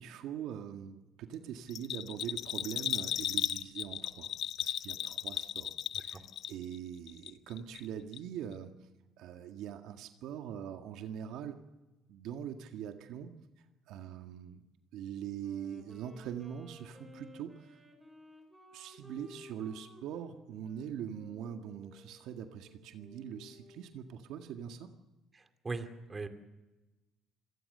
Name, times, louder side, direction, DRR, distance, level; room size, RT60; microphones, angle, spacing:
voice 1, 0.0-4.3 4.6-5.7 6.0-6.2 6.5-8.7 9.2-11.6 12.1-13.3 13.9-14.6 14.9-17.8 18.7-24.9, right 9 dB, 75° right, 6 dB, 1.8 m, -42 dB
Bell, 1.7-6.8 7.1-7.9 8.1-8.2, left 11 dB, 60° left, 0.8 m, -36 dB
Wind instrument woodwind instrument, 15.3-24.0, left 1 dB, 5° right, 5.7 m, -56 dB
voice 2, 25.3-26.3, right 3 dB, 25° right, 7 dB, 2.4 m, -40 dB
27.0 x 18.0 x 6.8 m, 1.1 s
cardioid pair, 115°, 0 cm